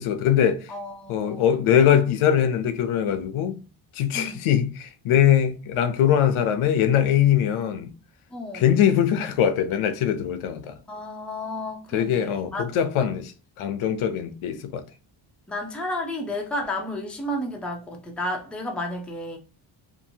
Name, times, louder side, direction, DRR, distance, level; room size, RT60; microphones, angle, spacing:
voice 1, 0.0-0.7 1.1-3.6 4.0-7.9 8.5-10.8 11.9-13.3 13.6-14.8, left 9 dB, 85° left, 0.6 m, -22 dB
voice 2, 0.7-1.5 4.1-4.5 8.3-8.7 10.9-12.7 15.5-19.4, left 1 dB, ahead, 0.4 m, -32 dB
2.7 x 2.6 x 2.6 m
cardioid pair, 130°, 48 cm